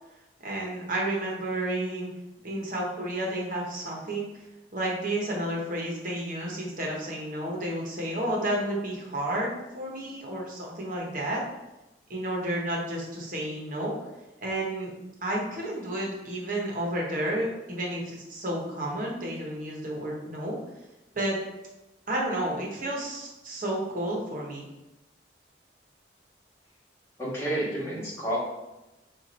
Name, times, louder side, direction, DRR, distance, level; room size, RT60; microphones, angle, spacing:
voice 1, 0.4-2.1 2.4-4.3 4.7-11.4 12.1-14.0 14.4-14.9 15.2-20.6 21.1-21.3 22.1-24.7, right 1 dB, 45° right, -3 dB, 1.1 m, -31 dB
voice 2, 27.2-28.4, right 1 dB, 15° left, -7 dB, 1.5 m, -30 dB
4.6 x 2.5 x 4.2 m, 0.99 s
head